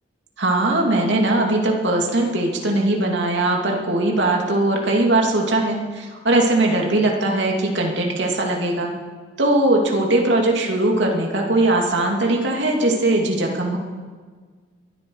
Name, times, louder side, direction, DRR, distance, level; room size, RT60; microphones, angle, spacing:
voice 1, 0.4-8.9 9.4-13.8, right 2 dB, 70° right, 0 dB, 2.6 m, -20 dB
22.5 x 13.0 x 4.7 m, 1.5 s
head